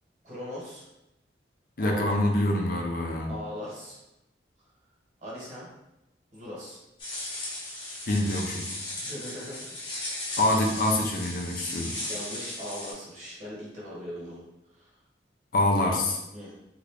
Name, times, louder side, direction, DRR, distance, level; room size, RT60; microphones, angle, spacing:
voice 1, 0.2-0.8 1.8-2.2 3.3-4.0 5.2-5.7 6.3-6.8 9.0-10.4 12.0-14.4 14.7-14.9 16.3-16.5, left 1 dB, 40° right, -6 dB, 1.1 m, -40 dB
voice 2, 1.8-3.3 8.1-8.7 10.4-12.0 15.5-16.2, left 1 dB, 50° left, 1 dB, 0.5 m, -25 dB
sound 1, 7.0-12.9, left 1 dB, 30° left, 0.8 m, -36 dB
2.8 x 2.5 x 3.3 m, 0.90 s
head